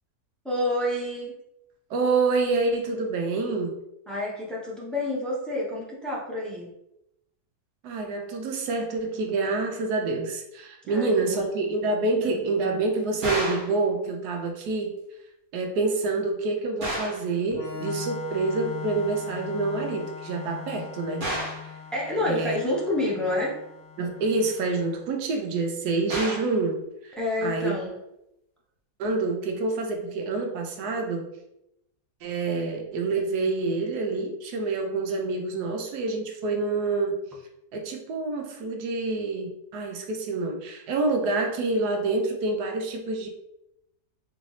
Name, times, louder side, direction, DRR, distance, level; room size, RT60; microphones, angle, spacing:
voice 1, 0.4-1.3 4.1-6.7 10.8-11.6 12.2-12.3 21.9-23.6 27.1-28.0, left 1 dB, ahead, -5 dB, 0.3 m, -28 dB
voice 2, 1.9-3.8 7.8-15.0 15.5-21.2 21.5-21.7 22.3-22.6 24.0-27.8 29.0-31.3 32.2-37.2 37.7-43.3, right 3 dB, 75° right, 3 dB, 1.2 m, -27 dB
sound 1, 13.2-13.8 16.8-17.3 21.2-21.7 26.1-26.6, right 1 dB, 35° right, 1.2 m, -30 dB
Organ, 17.5-25.0, left 6 dB, 70° left, 1.0 m, -40 dB
4.0 x 3.1 x 3.1 m, 0.84 s
omnidirectional pair, 1.8 m